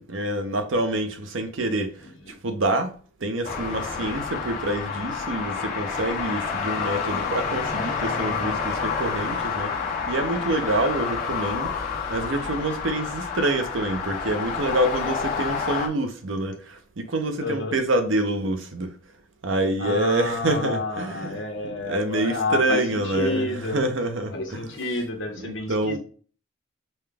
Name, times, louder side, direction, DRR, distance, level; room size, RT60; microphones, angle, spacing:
voice 1, 0.0-19.0 19.4-21.4 21.8-24.6 25.4-26.0, right 1 dB, 85° right, 0.8 m, -27 dB
voice 2, 2.0-2.4 17.4-17.8 19.8-23.8 24.3-26.0, left 2 dB, 75° left, 1.1 m, -29 dB
sound 1, 3.4-15.9, left 5 dB, 40° left, 1.3 m, -29 dB
5.5 x 2.3 x 3.4 m
head